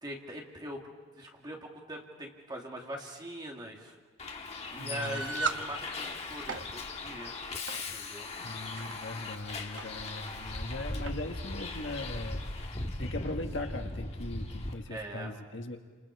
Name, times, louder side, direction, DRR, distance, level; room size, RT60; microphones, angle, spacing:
voice 1, 0.0-4.0 4.7-7.3 7.9-8.3 14.9-15.4, right 1 dB, 20° right, 0 dB, 2.5 m, -42 dB
Bus, 4.2-14.7, left 2 dB, 30° left, 1.6 m, -39 dB
voice 2, 4.8-5.2 8.4-15.8, left 2 dB, 65° left, 4 dB, 1.8 m, -40 dB
sound 1, 5.0-5.7 6.3-6.7 7.7-7.9 8.6-8.9 9.8-9.9 10.2-10.3 11.1-11.2, right 4 dB, 65° right, 1.1 m, -35 dB
29.5 x 27.5 x 4.8 m, 1.4 s
head